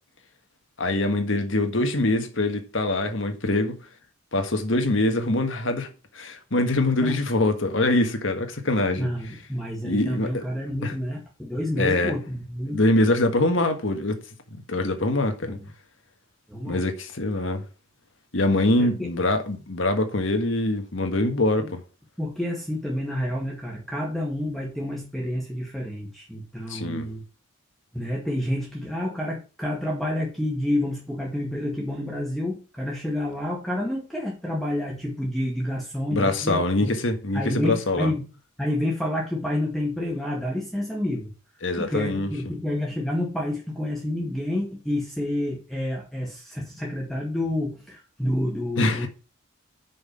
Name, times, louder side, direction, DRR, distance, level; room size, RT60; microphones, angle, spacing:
voice 1, 0.8-3.8 4.3-5.9 6.1-9.1 9.8-10.4 10.8-10.9 11.8-12.1 12.7-14.2 14.5-15.6 16.6-17.6 18.3-21.8 26.7-27.1 36.1-38.1 41.6-42.3 48.8-49.1, left 2 dB, 70° left, 1.6 m, -24 dB
voice 2, 8.9-12.8 15.4-15.6 16.5-16.9 18.8-19.1 21.6-21.7 22.2-27.2 27.9-37.0 37.3-41.3 41.7-49.1, left 1 dB, ahead, 2.0 m, -29 dB
6.3 x 5.7 x 6.9 m
head